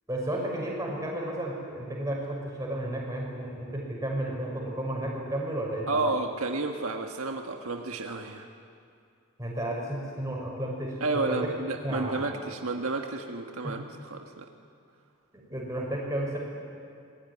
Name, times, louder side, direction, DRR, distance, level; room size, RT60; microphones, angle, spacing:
voice 1, 0.1-6.0 9.4-11.0 11.3-11.4 11.8-12.2 13.6-13.8 15.3-16.4, right 1 dB, 15° right, -2 dB, 6.2 m, -32 dB
voice 2, 5.9-8.5 11.0-14.5, right 3 dB, 75° right, 3 dB, 1.5 m, -31 dB
25.5 x 21.0 x 9.9 m, 2.4 s
head